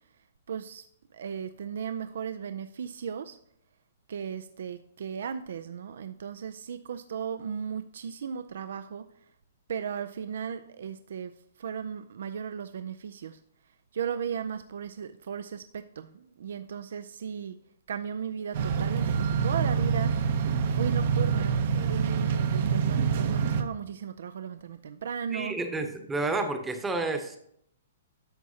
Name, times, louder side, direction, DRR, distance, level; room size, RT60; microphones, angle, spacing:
voice 1, 0.5-0.8 1.1-3.4 4.1-9.1 9.7-11.3 11.6-13.4 13.9-17.6 17.9-20.1 20.7-25.5, right 7 dB, 70° right, 11 dB, 0.4 m, -36 dB
sound 1, 18.5-23.6, right 6 dB, 55° right, 0.8 m, -26 dB
voice 2, 25.3-27.4, right 3 dB, 10° right, 6 dB, 0.9 m, -30 dB
11.0 x 7.0 x 2.8 m, 0.71 s
hypercardioid pair, 150°, 0 cm